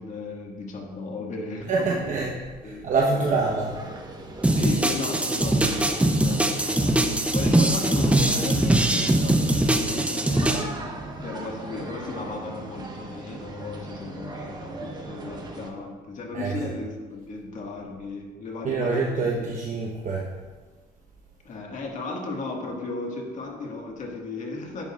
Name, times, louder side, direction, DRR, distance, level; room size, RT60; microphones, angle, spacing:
voice 1, 0.0-2.2 2.6-3.3 4.3-10.7 11.2-19.5 21.4-24.9, left 3 dB, 45° left, 0 dB, 1.8 m, -35 dB
voice 2, 1.7-2.3 2.6-3.7 16.3-16.5 18.6-20.3, right 3 dB, 45° right, -2 dB, 1.1 m, -25 dB
sound 1, 3.3-15.7, right 2 dB, 25° right, 1.2 m, -39 dB
sound 2, 4.4-10.6, right 1 dB, 5° right, 0.7 m, -22 dB
10.5 x 8.1 x 2.5 m, 1.4 s
cardioid pair, 110°, 17 cm